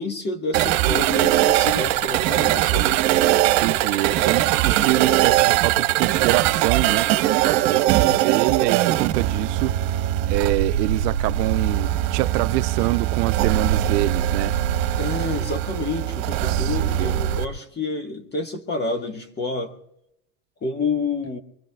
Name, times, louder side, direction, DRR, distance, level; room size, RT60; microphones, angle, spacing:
voice 1, 0.0-2.9 15.0-19.7 20.6-21.4, left 3 dB, 20° left, 1.6 m, -28 dB
sound 1, 0.5-17.4, right 13 dB, 60° right, 1.3 m, -21 dB
voice 2, 3.4-9.8 10.3-14.5 16.5-17.2, right 18 dB, 85° right, 0.7 m, -26 dB
24.0 x 23.5 x 2.4 m
supercardioid pair, 140°, 47 cm